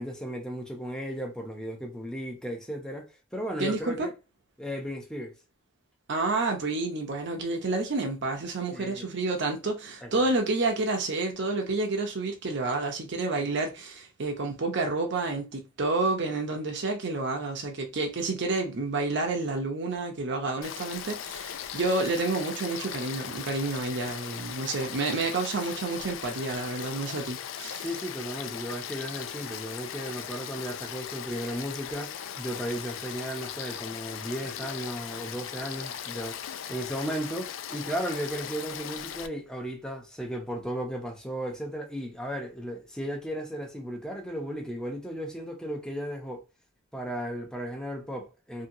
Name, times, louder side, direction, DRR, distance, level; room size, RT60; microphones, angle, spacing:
voice 1, 0.0-4.1 4.6-5.3 8.7-9.1 10.0-10.1 27.8-46.5 46.9-48.7, equal, 5° left, 0.6 m, -35 dB
voice 2, 3.6-4.1 6.1-27.9, right 3 dB, 65° right, 0.7 m, -29 dB
Frog / Stream, 20.6-39.3, left 9 dB, 85° left, 0.3 m, -38 dB
2.7 x 2.7 x 2.7 m
head